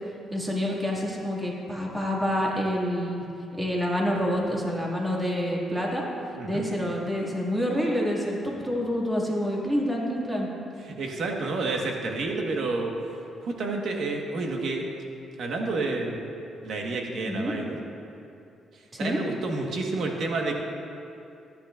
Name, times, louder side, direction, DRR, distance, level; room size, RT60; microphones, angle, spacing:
voice 1, 0.3-3.2 3.6-6.1 6.4-10.5 17.2-17.5 18.9-19.2, equal, 15° right, -3 dB, 2.1 m, -27 dB
voice 2, 6.3-6.7 10.8-12.9 13.4-14.8 15.4-16.2 16.6-17.8 19.0-20.6, right 3 dB, 65° right, 1 dB, 1.4 m, -29 dB
14.5 x 10.0 x 2.5 m, 2.7 s
cardioid pair, 90°, 0 cm